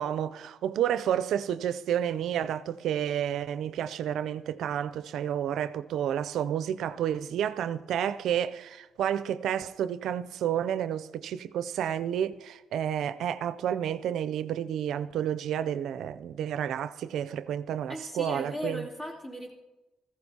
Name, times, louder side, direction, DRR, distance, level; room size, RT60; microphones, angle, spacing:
voice 1, 0.0-18.8, right 10 dB, 75° right, 0.4 m, -30 dB
voice 2, 17.9-19.5, equal, 30° left, 3.0 m, -37 dB
16.5 x 14.5 x 2.8 m
cardioid pair, 90°, 0 cm